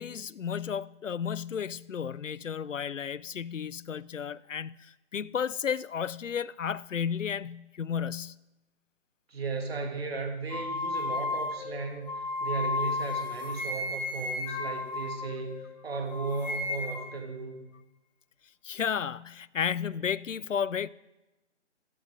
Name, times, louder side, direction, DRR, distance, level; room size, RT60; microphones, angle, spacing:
voice 1, 0.0-8.4 18.6-20.9, left 7 dB, 90° left, 0.5 m, -33 dB
voice 2, 9.3-17.6, right 4 dB, 55° right, 2.6 m, -35 dB
sound 1, 10.5-15.8 16.1-17.2, left 3 dB, 35° left, 1.4 m, -33 dB
22.5 x 10.0 x 3.7 m
figure-of-eight pair, 150°, 37 cm